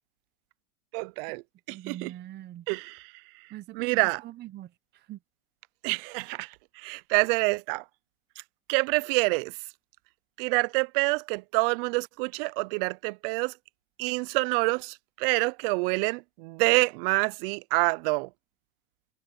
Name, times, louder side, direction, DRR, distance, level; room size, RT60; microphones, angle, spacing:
voice 1, 0.9-1.4 1.7-2.1 2.7-3.5 3.7-4.2 5.8-7.8 8.7-9.6 10.4-13.6 14.0-18.3, right 28 dB, 45° right, 0.5 m, -27 dB
voice 2, 1.7-2.7 3.5-5.2, right 13 dB, 25° right, 0.9 m, -42 dB
supercardioid pair, 130°, 40 cm